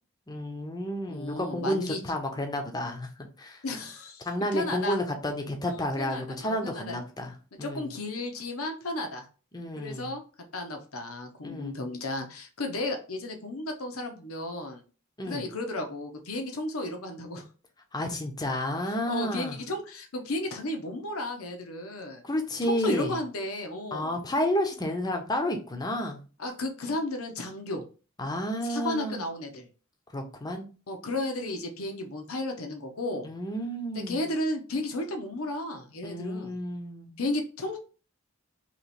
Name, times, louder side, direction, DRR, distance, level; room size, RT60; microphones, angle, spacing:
voice 1, 0.3-3.1 3.4-3.6 4.3-7.9 9.5-10.1 11.4-11.7 15.2-15.4 17.9-19.6 22.2-23.1 23.9-26.2 28.2-29.2 30.1-30.7 33.2-34.3 36.0-37.2, equal, 20° left, 4 dB, 0.6 m, -31 dB
voice 2, 1.1-2.0 3.6-5.0 5.7-7.0 7.6-9.2 9.8-10.2 10.5-14.8 15.3-17.5 19.1-22.2 22.6-24.2 26.4-27.8 28.6-29.7 30.9-33.3 33.9-36.5 37.2-37.8, left 1 dB, 85° left, 4 dB, 0.8 m, -33 dB
3.0 x 3.0 x 4.2 m, 0.36 s
head